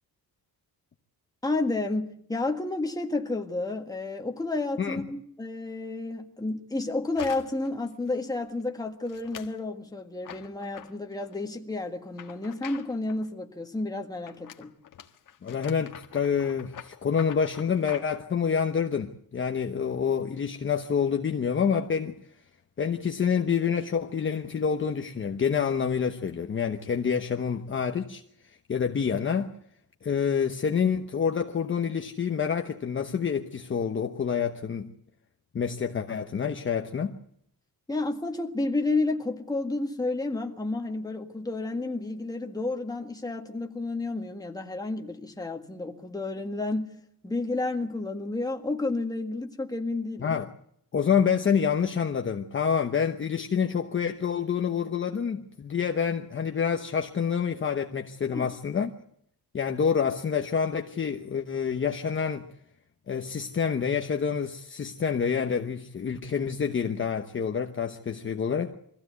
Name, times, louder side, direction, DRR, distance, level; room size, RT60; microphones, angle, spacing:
voice 1, 1.4-14.7 37.9-46.9 47.2-50.4 58.3-58.5, left 2 dB, 10° left, 1.7 m, -31 dB
voice 2, 4.8-5.1 15.4-22.2 22.8-29.5 30.0-34.9 35.5-37.2 50.2-50.5 50.9-58.9 59.5-62.5 63.1-68.8, left 7 dB, 35° left, 1.0 m, -27 dB
sound 1, 7.2-7.7 8.1-8.5 9.1-9.6 10.2-11.4 12.1-13.3 14.3-18.2, left 9 dB, 60° left, 1.6 m, -46 dB
23.0 x 15.5 x 8.1 m
wide cardioid pair, 160°, 36 cm